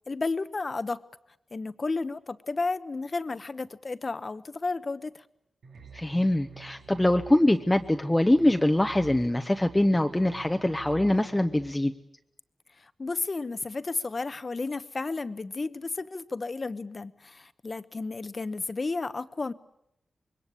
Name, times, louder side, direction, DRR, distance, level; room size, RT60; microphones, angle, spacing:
voice 1, 0.1-1.0 1.5-5.2 12.8-19.5, left 3 dB, 40° left, 13 dB, 1.0 m, -32 dB
sound 1, 5.6-11.7, right 6 dB, 80° right, 2.9 m, -48 dB
voice 2, 5.9-11.9, left 1 dB, 10° left, 6 dB, 0.9 m, -23 dB
25.5 x 22.0 x 8.4 m, 0.80 s
wide cardioid pair, 90°, 0 cm